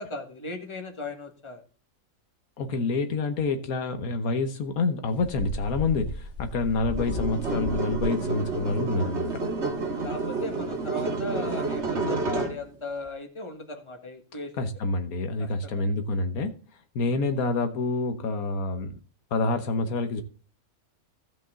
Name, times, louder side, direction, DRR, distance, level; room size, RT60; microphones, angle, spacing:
voice 1, 0.0-1.6 9.6-14.6 15.4-15.9, left 1 dB, 20° left, 1.7 m, -37 dB
voice 2, 2.6-9.3 14.6-16.6 16.9-19.0 19.3-20.2, left 3 dB, 75° left, 1.5 m, -27 dB
sound 1, 5.1-9.7 10.0-10.1 10.5-10.6 11.0-11.1 11.6-11.8, left 3 dB, 55° left, 1.3 m, -36 dB
sound 2, 7.0-12.6, right 3 dB, 50° right, 1.9 m, -29 dB
16.0 x 5.4 x 3.7 m
omnidirectional pair, 1.5 m